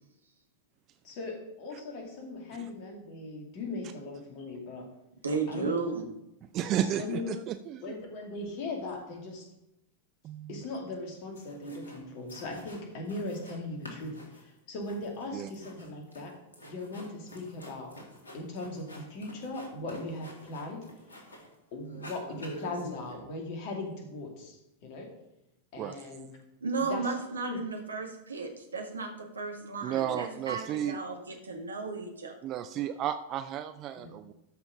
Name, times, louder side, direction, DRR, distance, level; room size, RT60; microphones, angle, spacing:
voice 1, 1.0-4.9 5.5-5.7 6.8-7.3 7.8-9.5 10.5-16.3 16.7-17.9 18.3-20.8 21.7-25.1 25.7-26.3 26.8-27.1 27.5-27.6 34.0-34.1, left 2 dB, 45° left, 2 dB, 2.4 m, -39 dB
voice 2, 5.2-6.0 26.6-32.4, right 4 dB, 75° right, 3 dB, 1.6 m, -34 dB
voice 3, 6.5-7.8 10.2-10.6 15.3-15.5 25.8-26.0 29.8-31.0 32.4-34.3, right 10 dB, 35° right, 11 dB, 0.4 m, -33 dB
sound 1, 11.3-12.0 12.3-13.6 13.8-21.5 21.8-23.1, equal, 75° left, 2.1 m, -48 dB
13.0 x 5.9 x 3.7 m, 0.86 s
figure-of-eight pair, 90°, 0 cm